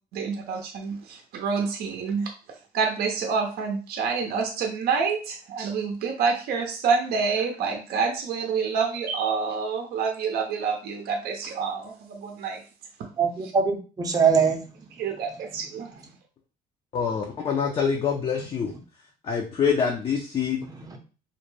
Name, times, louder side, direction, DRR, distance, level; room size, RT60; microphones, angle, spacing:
voice 1, 0.1-2.3 2.7-12.6 15.0-16.0, right 5 dB, 65° right, 2 dB, 0.6 m, -27 dB
voice 2, 13.2-14.6 20.7-21.0, right 6 dB, 20° right, 3 dB, 0.6 m, -23 dB
voice 3, 16.9-18.7 19.2-20.6, left 6 dB, 30° left, 1 dB, 0.5 m, -25 dB
2.5 x 2.1 x 3.1 m, 0.35 s
cardioid pair, 110°, 17 cm